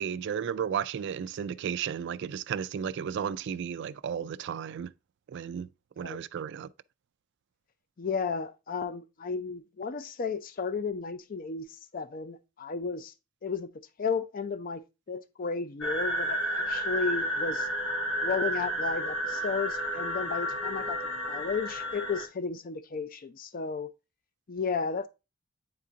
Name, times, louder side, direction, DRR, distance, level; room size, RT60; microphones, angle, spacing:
voice 1, 0.0-4.9 5.3-5.7 6.0-6.7, right 8 dB, 55° right, 0.3 m, -33 dB
voice 2, 8.0-11.7 11.9-13.1 13.4-13.7 14.0-14.8 15.1-17.7 18.2-21.0 21.3-23.9 24.5-25.1, left 5 dB, 40° left, 0.4 m, -33 dB
sound 1, 15.8-22.3, equal, 80° left, 1.6 m, -31 dB
9.1 x 3.7 x 2.8 m
head